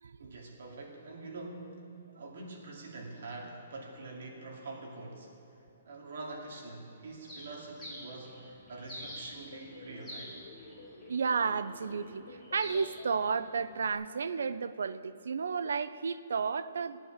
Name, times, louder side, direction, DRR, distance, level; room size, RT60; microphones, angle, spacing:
voice 1, 0.2-1.9 2.2-10.4, right 2 dB, 55° right, -1 dB, 2.4 m, -45 dB
Bird, 7.2-13.9, left 1 dB, 5° left, 2.6 m, -49 dB
sound 1, 9.4-13.2, left 3 dB, 50° left, 3.2 m, -50 dB
voice 2, 11.1-17.0, right 5 dB, 85° right, 14 dB, 0.5 m, -32 dB
14.0 x 9.0 x 7.3 m, 3.0 s
hypercardioid pair, 180°, 0 cm